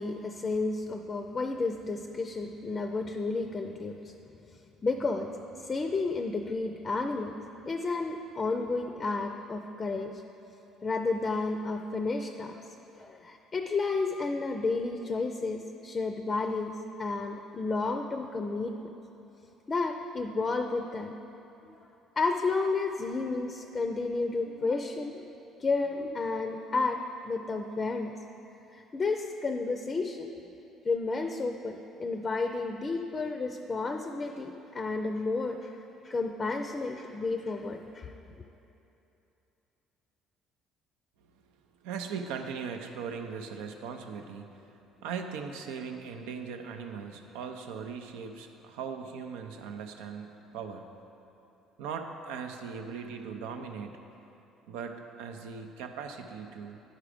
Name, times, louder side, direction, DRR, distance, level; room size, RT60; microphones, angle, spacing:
voice 1, 0.0-4.1 4.8-5.3 5.6-7.3 7.7-10.2 10.8-18.7 19.7-21.1 21.7-21.9 22.2-25.3 25.6-28.2 28.7-30.3 30.8-35.8 36.0-38.1, left 3 dB, 30° left, 5 dB, 0.5 m, -31 dB
voice 2, 41.8-44.6 45.0-50.9 51.8-54.0 54.7-56.8, right 6 dB, 85° right, 5 dB, 0.5 m, -39 dB
10.0 x 4.8 x 5.0 m, 3.0 s
supercardioid pair, 80°, 0 cm